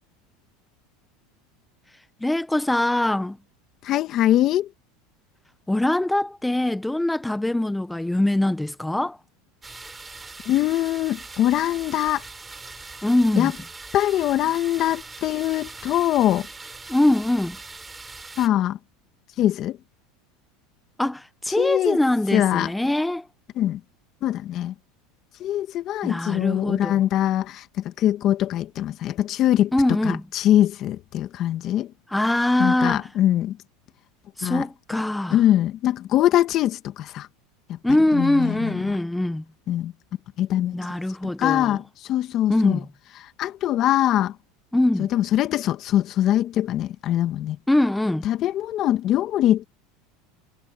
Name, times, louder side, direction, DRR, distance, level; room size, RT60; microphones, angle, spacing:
voice 1, 2.2-3.4 5.7-9.2 13.0-13.5 16.9-17.6 21.0-23.3 26.0-27.0 29.7-30.2 32.1-33.1 34.4-35.4 37.8-39.4 40.7-41.8 42.5-42.9 44.7-45.1 47.7-48.3, left 1 dB, 5° left, 1.4 m, -22 dB
voice 2, 3.8-4.7 10.5-12.2 13.4-13.5 13.9-16.5 18.4-18.8 19.4-19.8 21.6-22.0 22.3-22.7 23.6-23.8 24.2-24.7 25.4-29.7 30.0-31.9 32.6-33.6 34.4-34.7 35.3-37.3 37.7-37.8 38.1-38.8 39.7-39.9 40.4-42.8 43.2-44.4 45.0-47.6 48.2-49.6, left 12 dB, 45° left, 1.9 m, -22 dB
sound 1, 9.6-18.5, right 3 dB, 15° right, 4.6 m, -41 dB
supercardioid pair, 125°, 0 cm